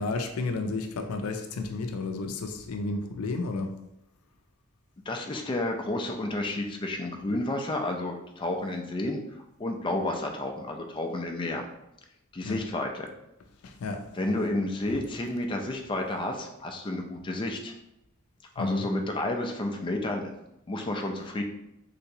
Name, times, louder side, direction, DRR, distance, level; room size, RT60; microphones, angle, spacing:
voice 1, 0.0-3.8 12.4-12.6 13.6-14.0 18.6-18.9, left 3 dB, 85° left, 5 dB, 0.4 m, -32 dB
voice 2, 5.1-11.7 12.3-13.1 14.2-17.7 18.6-20.3 20.7-21.4, left 1 dB, 25° left, 3 dB, 0.4 m, -31 dB
3.3 x 2.9 x 2.7 m, 0.85 s
head